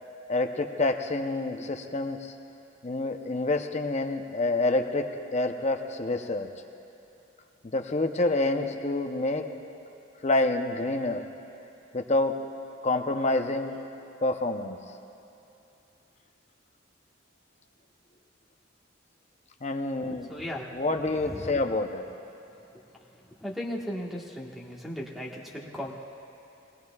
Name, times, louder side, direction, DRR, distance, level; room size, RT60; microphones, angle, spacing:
voice 1, 0.3-2.3 2.8-5.1 5.3-6.5 7.6-9.4 10.2-11.2 11.9-12.4 12.8-13.7 14.2-14.8 19.6-20.3 20.7-22.0, left 2 dB, 35° left, 5 dB, 0.7 m, -27 dB
voice 2, 20.1-20.6 23.4-26.0, equal, ahead, -2 dB, 1.4 m, -36 dB
22.0 x 19.0 x 2.4 m, 2.9 s
head